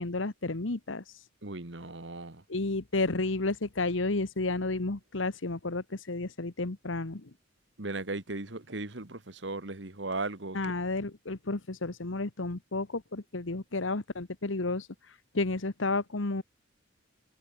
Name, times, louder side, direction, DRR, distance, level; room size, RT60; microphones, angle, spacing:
voice 1, 0.0-1.3 2.5-7.3 10.5-16.4, left 3 dB, 85° left, 1.3 m, -32 dB
voice 2, 1.4-2.4 7.8-10.6, right 2 dB, 65° right, 2.0 m, -37 dB
head